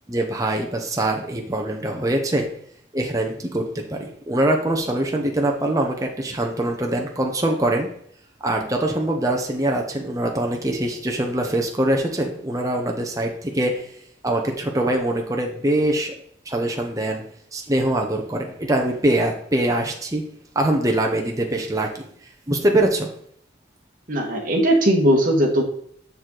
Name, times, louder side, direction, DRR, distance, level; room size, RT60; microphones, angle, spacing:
voice 1, 0.1-2.5 2.9-7.9 8.4-13.9 14.2-16.1 16.5-17.2 17.5-20.2 20.5-21.9 22.5-23.1, right 1 dB, 20° right, 1 dB, 0.7 m, -23 dB
voice 2, 24.1-25.6, equal, 45° right, 0 dB, 1.5 m, -18 dB
6.9 x 6.4 x 3.8 m, 0.63 s
head